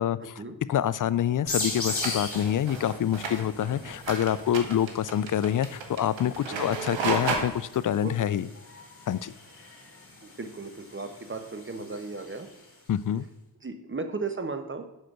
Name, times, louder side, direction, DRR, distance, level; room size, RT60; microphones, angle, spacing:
voice 1, 0.0-0.3 0.7-8.5 9.1-9.3 12.9-13.3, left 10 dB, 45° left, 17 dB, 0.4 m, -26 dB
sound 1, 1.5-12.8, left 2 dB, 30° left, 2.7 m, -40 dB
sound 2, 1.6-7.4, right 4 dB, 85° right, 1.2 m, -33 dB
voice 2, 8.0-8.4 10.2-12.5 13.6-14.9, right 3 dB, 25° right, 7 dB, 1.0 m, -36 dB
6.5 x 4.9 x 6.0 m, 0.95 s
cardioid pair, 45°, 44 cm